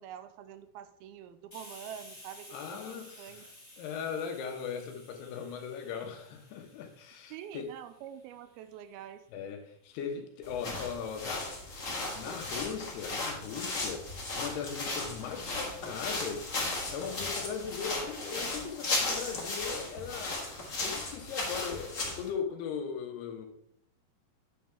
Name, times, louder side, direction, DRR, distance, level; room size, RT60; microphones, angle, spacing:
voice 1, 0.0-2.6 2.9-3.4 7.3-9.2, right 10 dB, 80° right, 11 dB, 2.4 m, -46 dB
Hiss, 1.5-8.9, left 1 dB, 10° left, 2.0 m, -54 dB
voice 2, 2.5-3.5 3.8-7.7 9.3-11.5 12.1-14.0 14.3-20.4 20.8-23.5, left 6 dB, 90° left, 4 dB, 3.2 m, -39 dB
sound 1, 10.4-22.3, left 2 dB, 40° left, 1.1 m, -36 dB
9.3 x 7.9 x 3.5 m, 0.69 s
omnidirectional pair, 4.5 m